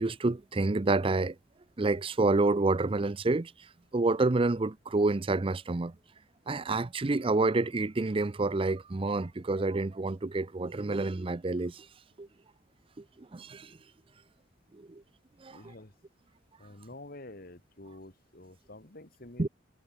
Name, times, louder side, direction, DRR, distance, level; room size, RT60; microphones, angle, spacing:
voice 1, 0.0-1.3 1.8-3.5 3.9-5.9 6.5-11.9 12.2-12.3 13.3-13.8 14.9-15.0 15.4-15.7 19.4-19.5, right 3 dB, 30° right, 0.5 m, -28 dB
voice 2, 15.5-15.9 16.6-19.5, left 2 dB, 50° left, 2.3 m, -48 dB
head